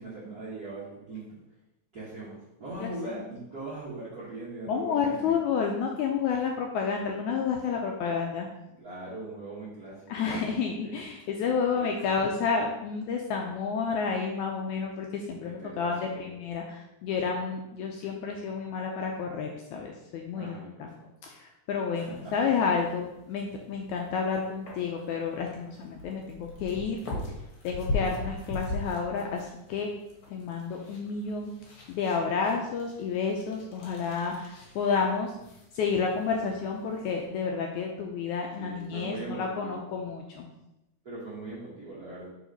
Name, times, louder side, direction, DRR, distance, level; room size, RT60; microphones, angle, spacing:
voice 1, 0.0-1.4 1.9-5.6 8.8-11.0 11.7-12.1 15.4-16.3 20.3-20.9 21.9-22.3 38.6-39.8 41.0-42.3, right 2 dB, 60° right, -8 dB, 0.9 m, -41 dB
voice 2, 2.8-3.3 4.7-8.5 10.1-20.9 21.2-27.0 27.6-29.9 30.3-31.5 31.9-35.4 35.7-40.5, left 5 dB, 85° left, 1 dB, 1.7 m, -30 dB
sound 1, 21.9-37.3, left 2 dB, 60° left, 2.7 m, -41 dB
5.1 x 4.8 x 5.1 m, 0.90 s
omnidirectional pair, 3.9 m